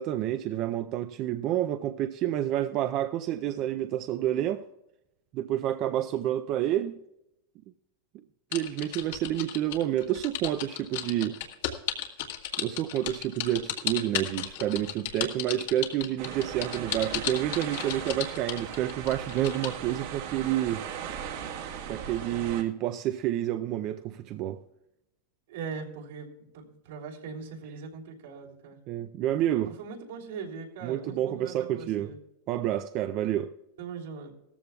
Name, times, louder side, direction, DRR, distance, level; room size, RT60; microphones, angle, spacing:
voice 1, 0.0-4.6 5.3-7.0 8.5-11.4 12.6-20.8 21.9-24.6 28.9-29.7 30.8-32.1 32.5-33.5, right 12 dB, 35° right, 0.4 m, -29 dB
sound 1, 8.5-19.7, left 12 dB, 70° left, 1.7 m, -34 dB
sound 2, 16.2-22.6, right 8 dB, 60° right, 1.5 m, -38 dB
voice 2, 25.5-28.8 29.6-32.2 33.8-34.3, right 5 dB, 75° right, 3.1 m, -40 dB
17.0 x 14.0 x 2.3 m
supercardioid pair, 160°, 0 cm